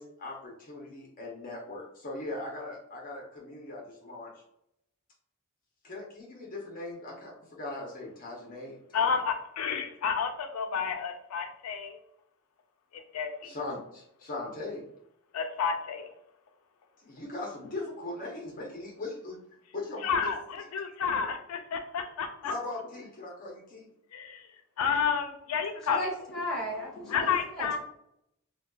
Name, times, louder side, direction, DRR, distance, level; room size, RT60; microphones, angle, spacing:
voice 1, 0.0-4.3 5.8-9.1 13.4-14.8 17.0-19.4 19.7-20.3 22.4-23.9, left 2 dB, 40° left, -2 dB, 0.7 m, -40 dB
voice 2, 8.9-12.0 12.9-13.5 15.3-16.1 20.0-22.5 24.1-24.4 24.8-26.1 27.1-27.8, left 6 dB, 80° left, 5 dB, 0.4 m, -30 dB
voice 3, 25.9-27.8, equal, ahead, -7 dB, 1.5 m, -35 dB
4.0 x 2.2 x 2.3 m, 0.77 s
head